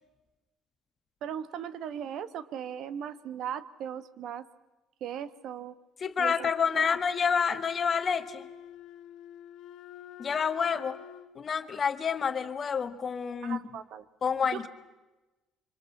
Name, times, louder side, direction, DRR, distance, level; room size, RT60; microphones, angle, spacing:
voice 1, 1.2-4.4 5.0-5.7 6.2-6.9 13.4-14.0 14.5-14.7, right 9 dB, 65° right, 15 dB, 1.2 m, -38 dB
voice 2, 6.0-8.5 10.2-11.0 11.3-13.6 14.2-14.7, left 6 dB, 35° left, 10 dB, 1.5 m, -28 dB
Wind instrument woodwind instrument, 6.4-11.3, left 10 dB, 75° left, 1.9 m, -48 dB
25.5 x 25.0 x 7.2 m, 1.1 s
cardioid pair, 120°, 0 cm